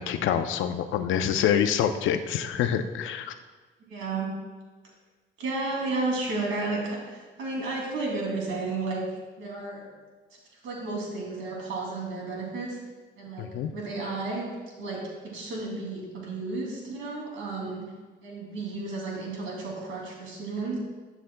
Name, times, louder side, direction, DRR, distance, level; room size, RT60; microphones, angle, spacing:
voice 1, 0.0-3.4 13.4-13.7, left 9 dB, 80° left, 9 dB, 0.6 m, -26 dB
voice 2, 3.9-4.3 5.4-9.0 9.4-9.9 10.5-12.8 13.2-14.5 14.8-17.9 18.2-20.8, right 3 dB, 80° right, -2 dB, 2.7 m, -32 dB
12.0 x 7.1 x 2.2 m, 1.3 s
cardioid pair, 90°, 20 cm